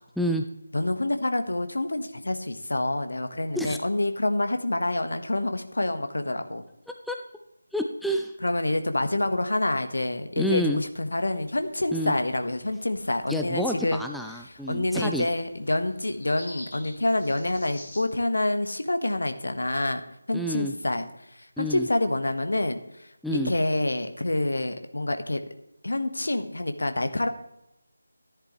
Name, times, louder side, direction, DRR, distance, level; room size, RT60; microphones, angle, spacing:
voice 1, 0.7-6.6 8.4-14.0 14.7-20.0 20.3-21.1 21.6-25.4 25.8-27.3, left 1 dB, 60° left, 8 dB, 1.2 m, -27 dB
voice 2, 7.7-8.3 10.4-10.8 11.9-12.1 13.3-15.3 20.3-20.7 21.6-21.9 23.2-23.5, equal, ahead, 3 dB, 0.3 m, -28 dB
sound 1, 11.1-18.0, left 1 dB, 30° left, 3.3 m, -49 dB
14.0 x 10.5 x 3.1 m, 0.85 s
figure-of-eight pair, 160°, 0 cm